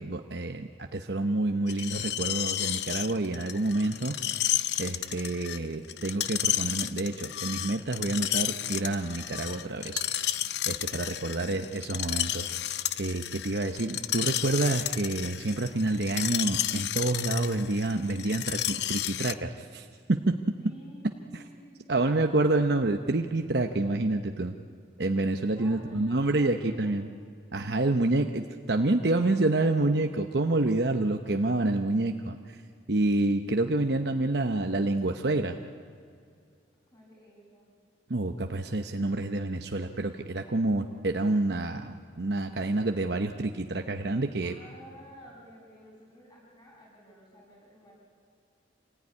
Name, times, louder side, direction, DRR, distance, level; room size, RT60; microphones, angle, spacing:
voice 1, 0.0-4.2 4.8-10.0 10.7-12.5 13.0-20.3 21.9-24.6 25.0-27.1 27.5-32.6 32.9-35.6 38.1-44.5, right 2 dB, 65° right, 5 dB, 0.9 m, -28 dB
Screech, 1.7-19.3, left 12 dB, 65° left, 0.6 m, -32 dB
voice 2, 20.6-22.3 25.5-26.9 36.9-37.7 44.4-47.9, equal, 25° left, -3 dB, 6.8 m, -51 dB
26.5 x 19.0 x 9.7 m, 2.3 s
head